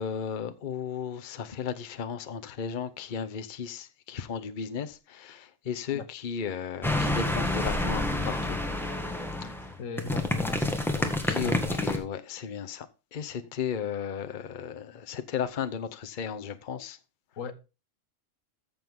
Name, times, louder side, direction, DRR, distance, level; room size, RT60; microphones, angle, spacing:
voice 1, 0.0-8.6 9.4-9.5 11.0-12.9 13.1-17.0, left 7 dB, 45° left, 0.9 m, -35 dB
sound 1, 6.8-12.0, left 1 dB, ahead, 1.6 m, -28 dB
voice 2, 9.8-10.7 11.3-11.8 17.4-17.5, left 4 dB, 80° left, 1.4 m, -37 dB
14.0 x 7.0 x 3.6 m
omnidirectional pair, 1.3 m